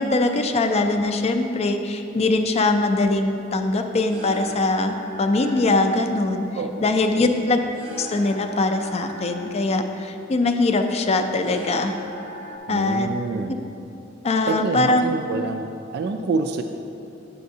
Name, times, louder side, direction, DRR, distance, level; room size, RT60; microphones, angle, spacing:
voice 1, 0.0-6.5 6.8-7.6 8.0-11.9 12.7-13.1 14.2-15.0, left 2 dB, 30° left, 6 dB, 0.4 m, -22 dB
sound 1, 3.3-12.6, right 1 dB, 30° right, 0.7 m, -41 dB
voice 2, 6.5-7.6 12.7-13.6 14.5-16.6, right 4 dB, 55° right, 5 dB, 0.3 m, -27 dB
9.2 x 6.7 x 2.7 m, 2.7 s
head